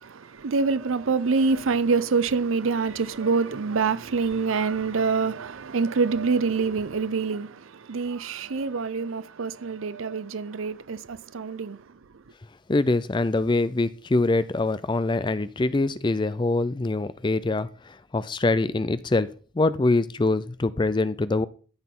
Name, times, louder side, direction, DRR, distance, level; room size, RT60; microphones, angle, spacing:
voice 1, 0.0-11.8, right 4 dB, 90° right, 0.6 m, -26 dB
voice 2, 12.7-19.3 19.5-21.5, left 2 dB, 25° left, 0.4 m, -24 dB
13.5 x 6.0 x 3.8 m
head